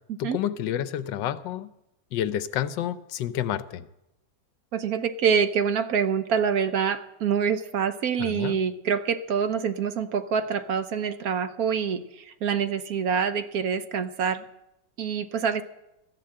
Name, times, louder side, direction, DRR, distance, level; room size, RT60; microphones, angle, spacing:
voice 1, 0.2-1.7 2.1-3.9 8.2-8.6, left 10 dB, 80° left, 14 dB, 1.3 m, -29 dB
voice 2, 4.7-14.4 15.0-15.6, right 7 dB, 60° right, 11 dB, 1.1 m, -26 dB
13.5 x 11.0 x 7.6 m, 0.88 s
omnidirectional pair, 2.0 m